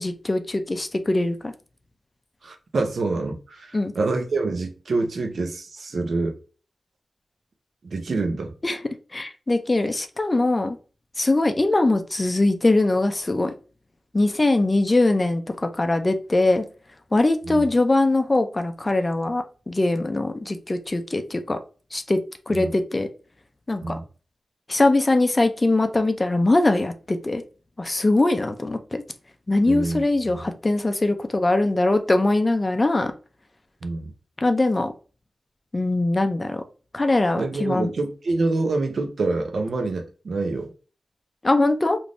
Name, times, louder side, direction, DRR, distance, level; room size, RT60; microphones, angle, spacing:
voice 1, 0.0-1.5 3.7-3.9 8.6-8.8 9.1-10.8 11.2-13.5 14.1-16.6 17.1-21.6 21.9-22.2 22.5-23.1 23.7-24.0 24.7-27.4 27.8-29.0 29.5-33.1 34.4-34.9 35.7-36.6 36.9-37.9 41.4-42.0, left 2 dB, 25° left, 0.4 m, -21 dB
voice 2, 2.4-6.3 7.8-8.5 17.5-17.7 22.5-22.7 23.8-24.0 29.7-30.4 33.8-34.1 37.4-40.7, right 3 dB, 70° right, 0.6 m, -26 dB
3.3 x 2.5 x 2.5 m
wide cardioid pair, 105°, 0 cm